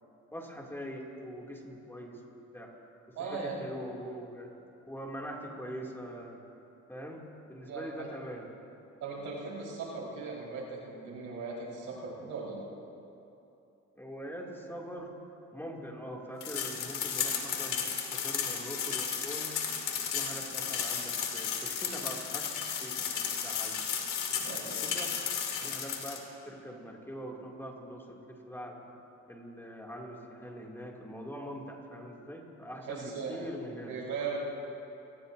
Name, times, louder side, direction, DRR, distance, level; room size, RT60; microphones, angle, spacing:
voice 1, 0.3-2.2 2.5-2.7 3.2-4.5 4.9-6.4 6.9-8.5 14.0-15.1 15.5-19.5 20.1-23.8 24.3-24.5 24.8-25.1 25.5-28.9 29.3-34.0, equal, 5° left, -2 dB, 2.6 m, -43 dB
voice 2, 3.1-3.7 7.7-8.1 9.0-12.7 24.4-24.8 32.9-33.5 33.9-34.4, right 4 dB, 85° right, -4 dB, 4.6 m, -38 dB
sound 1, 16.4-26.2, left 7 dB, 85° left, 2.2 m, -34 dB
28.0 x 19.0 x 2.7 m, 2.9 s
cardioid pair, 90°, 30 cm